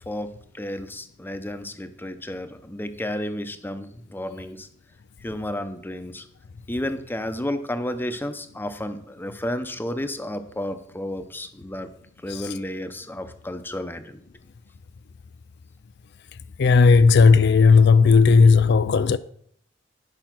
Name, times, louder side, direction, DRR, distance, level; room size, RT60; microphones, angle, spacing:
voice 1, 0.1-4.7 5.2-6.2 6.7-11.9 12.2-14.2, left 1 dB, 10° left, 0.7 m, -32 dB
voice 2, 16.6-19.2, left 4 dB, 60° left, 0.4 m, -15 dB
11.0 x 5.7 x 6.0 m
head